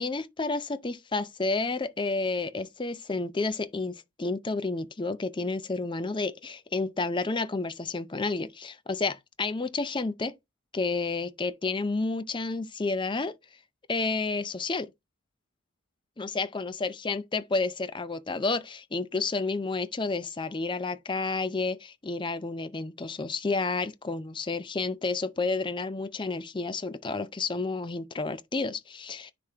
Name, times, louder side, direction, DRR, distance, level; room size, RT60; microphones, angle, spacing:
voice 1, 0.0-10.3 10.7-13.4 13.9-14.9 16.2-29.3, left 3 dB, 20° left, 0.5 m, -30 dB
9.9 x 3.5 x 2.8 m
head